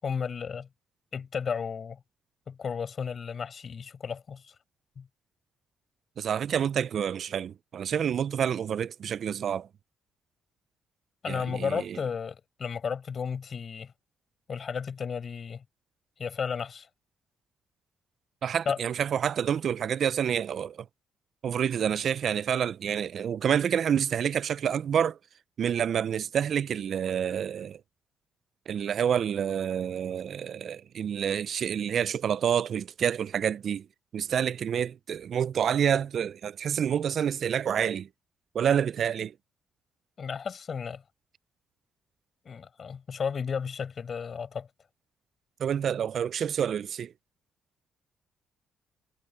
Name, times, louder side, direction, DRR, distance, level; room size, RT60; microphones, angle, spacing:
voice 1, 0.0-0.7 1.1-2.0 2.5-4.5 5.0-5.1 11.2-13.9 14.5-15.6 16.2-16.9 18.7-18.8 40.2-41.0 42.5-44.7, left 6 dB, 45° left, 5.6 m, -33 dB
voice 2, 6.2-9.7 11.3-12.0 18.4-20.9 21.4-25.2 25.6-27.8 28.7-33.9 34.1-38.1 38.5-39.3 45.6-47.1, right 8 dB, 60° right, 0.4 m, -28 dB
cardioid pair, 90°, 0 cm